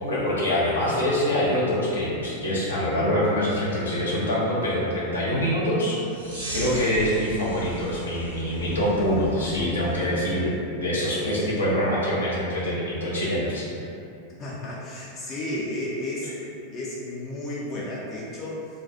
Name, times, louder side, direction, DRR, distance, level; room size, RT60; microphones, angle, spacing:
voice 1, 0.0-6.2 6.5-10.5 10.8-13.7, equal, 70° left, -6 dB, 0.6 m, -25 dB
sound 1, 6.1-10.5, right 2 dB, 80° right, 0.6 m, -37 dB
voice 2, 14.4-16.3 16.7-18.7, left 1 dB, 30° left, -6 dB, 0.4 m, -32 dB
2.3 x 2.3 x 2.5 m, 2.6 s
figure-of-eight pair, 90°, 0 cm